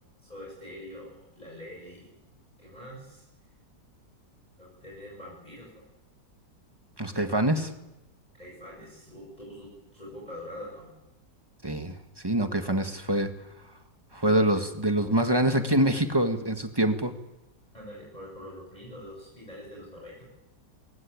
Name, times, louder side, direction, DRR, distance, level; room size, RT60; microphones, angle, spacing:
voice 1, 0.2-2.1 2.6-3.2 4.6-5.7 8.3-10.9 12.4-12.5 17.7-20.3, left 1 dB, 20° left, -4 dB, 7.7 m, -44 dB
voice 2, 7.0-7.7 11.6-11.9 12.2-13.3 14.1-17.1, right 1 dB, 15° right, 7 dB, 1.7 m, -25 dB
21.5 x 19.0 x 8.7 m, 0.96 s
omnidirectional pair, 1.9 m